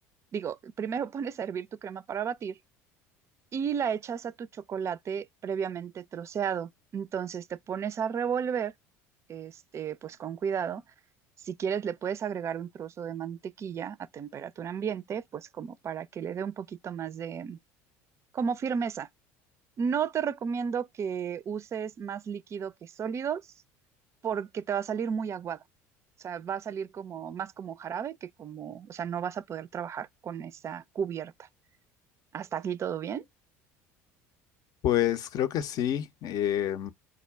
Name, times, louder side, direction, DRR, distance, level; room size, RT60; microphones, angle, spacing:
voice 1, 0.3-2.6 3.5-8.7 9.3-10.8 11.4-17.6 18.3-19.1 19.8-23.4 24.2-25.6 26.2-31.5 32.3-33.2, right 7 dB, 40° right, 0.4 m, -33 dB
voice 2, 34.8-36.9, left 11 dB, 55° left, 0.6 m, -28 dB
4.8 x 2.2 x 3.4 m
hypercardioid pair, 75°, 8 cm